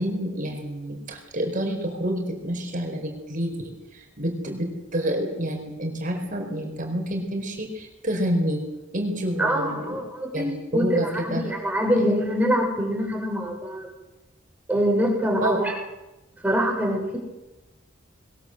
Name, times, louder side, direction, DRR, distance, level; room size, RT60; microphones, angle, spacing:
voice 1, 0.0-8.6 8.9-10.0 10.3-11.4 12.0-12.1 15.4-15.6, equal, 40° right, 3 dB, 4.7 m, -28 dB
voice 2, 9.4-13.9 14.7-15.7 16.4-17.2, equal, 10° right, 0 dB, 6.7 m, -24 dB
22.0 x 20.0 x 7.9 m, 0.99 s
head